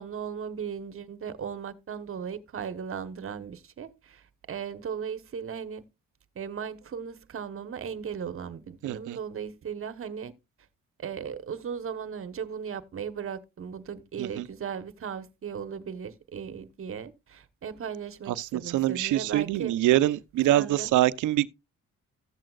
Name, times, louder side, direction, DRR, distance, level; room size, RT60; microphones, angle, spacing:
voice 1, 0.0-5.9 6.3-10.3 11.0-19.7 20.5-20.9, right 7 dB, 45° right, 1.1 m, -37 dB
voice 2, 8.8-9.2 14.2-14.5 18.3-21.5, right 14 dB, 80° right, 0.7 m, -25 dB
14.5 x 7.6 x 2.4 m
cardioid pair, 90°, 30 cm